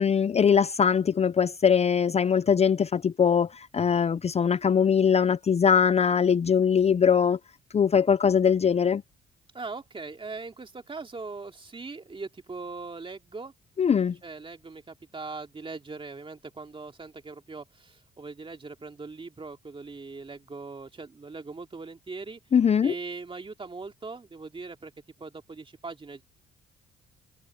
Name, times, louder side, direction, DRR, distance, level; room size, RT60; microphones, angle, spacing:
voice 1, 0.0-3.5 3.7-7.4 7.7-9.0 13.8-14.2 22.5-22.9, left 7 dB, 30° left, 0.5 m, -21 dB
voice 2, 9.5-13.5 14.2-22.4 22.8-24.9 25.2-26.2, right 4 dB, 25° right, 2.7 m, -40 dB
cardioid pair, 90°, 20 cm